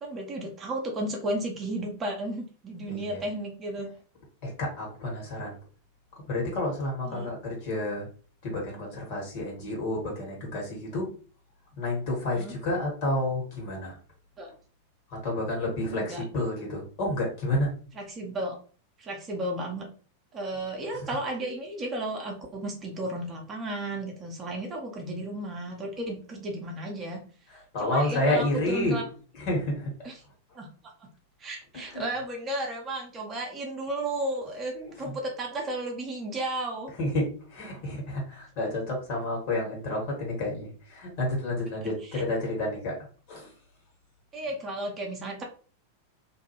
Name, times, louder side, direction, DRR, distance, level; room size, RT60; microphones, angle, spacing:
voice 1, 0.0-3.9 7.1-7.3 12.3-12.5 14.4-14.5 15.9-16.2 18.0-18.6 19.0-19.9 20.3-27.2 27.8-29.0 30.0-30.1 30.5-30.7 31.4-36.9 42.1-42.2 44.3-45.4, right 1 dB, 25° right, 1 dB, 0.7 m, -33 dB
voice 2, 2.9-3.2 4.4-5.5 6.2-8.1 8.4-11.1 11.8-14.0 15.1-17.7 20.9-21.2 27.5-29.0 29.3-29.9 31.7-32.2 34.7-35.2 36.9-43.0 43.3-43.5, left 1 dB, 45° left, -2 dB, 1.5 m, -30 dB
2.6 x 2.2 x 3.0 m, 0.39 s
figure-of-eight pair, 90°, 0 cm